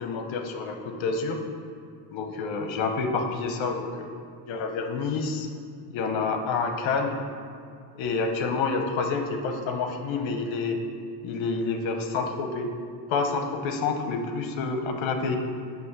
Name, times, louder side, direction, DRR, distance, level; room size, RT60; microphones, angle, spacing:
voice 1, 0.0-1.4 2.1-4.1 4.5-5.5 5.9-7.2 8.0-10.8 11.2-12.7 13.1-15.4, left 4 dB, 70° left, 5 dB, 0.9 m, -28 dB
7.9 x 3.0 x 6.0 m, 2.3 s
supercardioid pair, 80°, 48 cm